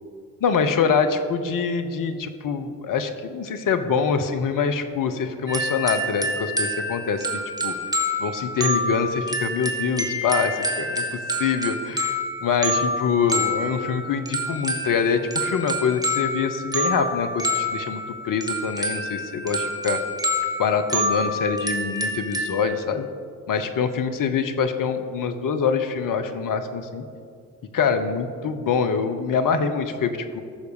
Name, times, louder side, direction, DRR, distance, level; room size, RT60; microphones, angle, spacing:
voice 1, 0.4-7.7 8.2-11.0 11.4-20.0 20.6-23.0 23.5-27.0 27.7-30.4, left 6 dB, 45° left, 8 dB, 1.1 m, -25 dB
sound 1, 5.5-22.6, equal, 10° right, 1.8 m, -27 dB
14.5 x 6.6 x 5.0 m, 2.3 s
hypercardioid pair, 50°, 44 cm